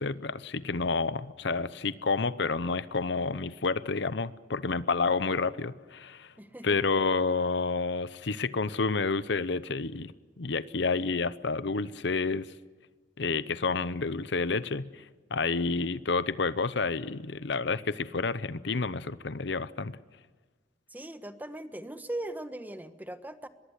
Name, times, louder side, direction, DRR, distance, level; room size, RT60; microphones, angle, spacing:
voice 1, 0.0-6.3 6.6-10.1 10.4-12.5 13.2-15.0 15.3-20.0, left 4 dB, 65° left, 16 dB, 0.8 m, -29 dB
voice 2, 6.4-6.8 20.9-23.5, right 1 dB, 10° right, 10 dB, 1.3 m, -39 dB
24.0 x 21.5 x 8.2 m, 1.4 s
head